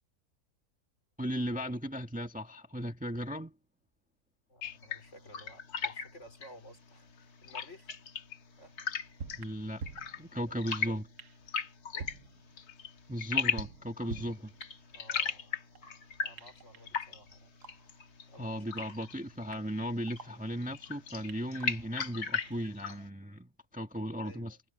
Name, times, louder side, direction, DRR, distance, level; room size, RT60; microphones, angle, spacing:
voice 1, 1.2-3.5 9.4-9.8 10.2-11.1 13.1-14.5 18.4-23.5 23.7-24.6, equal, 5° right, 1.5 m, -36 dB
voice 2, 4.5-7.9 8.6-8.8 10.5-11.0 11.9-12.2 14.9-15.6 16.2-17.5 18.3-18.9 24.2-24.6, equal, 45° left, 4.8 m, -55 dB
sound 1, 4.6-23.1, left 6 dB, 70° left, 1.9 m, -39 dB
sound 2, 8.6-8.7 9.2-10.7 11.2-11.7 12.0-13.0 13.3-14.9 15.2-16.0 16.4-18.0 18.4-18.5 18.8-20.9 21.3-22.7, right 5 dB, 80° right, 1.7 m, -48 dB
omnidirectional pair, 1.7 m